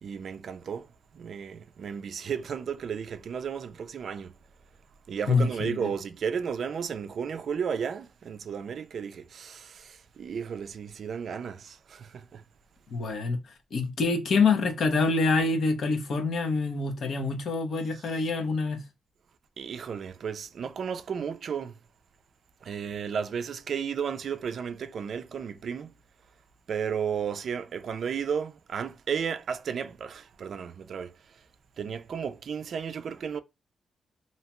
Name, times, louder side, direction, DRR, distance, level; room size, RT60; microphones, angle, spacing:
voice 1, 0.0-4.3 5.1-12.4 17.9-18.2 19.6-21.8 22.6-25.9 26.7-31.5 31.8-33.4, right 7 dB, 55° right, 0.3 m, -34 dB
voice 2, 5.3-5.9 12.9-13.4 13.7-18.8, left 4 dB, 55° left, 0.6 m, -26 dB
2.7 x 2.1 x 2.9 m
wide cardioid pair, 155°, 0 cm